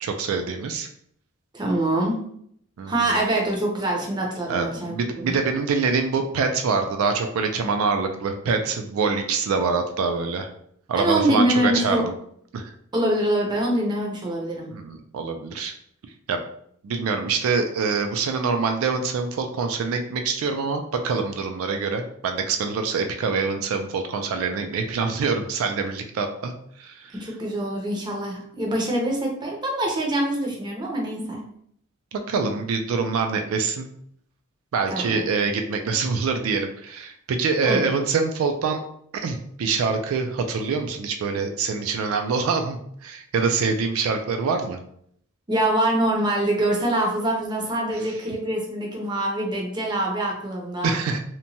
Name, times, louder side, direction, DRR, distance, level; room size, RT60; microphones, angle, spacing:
voice 1, 0.0-0.9 2.8-3.0 4.5-10.5 10.9-12.0 12.5-12.7 14.7-15.7 16.3-16.4 16.8-27.1 32.1-33.9 34.7-38.8 39.1-44.8 50.8-51.2, right 4 dB, 80° right, 5 dB, 0.3 m, -25 dB
voice 2, 1.5-2.2 2.9-5.3 10.9-12.1 12.9-14.7 27.1-31.4 34.9-35.2 37.6-37.9 45.5-50.9, right 1 dB, 20° right, -1 dB, 0.6 m, -24 dB
2.9 x 2.2 x 2.6 m, 0.67 s
head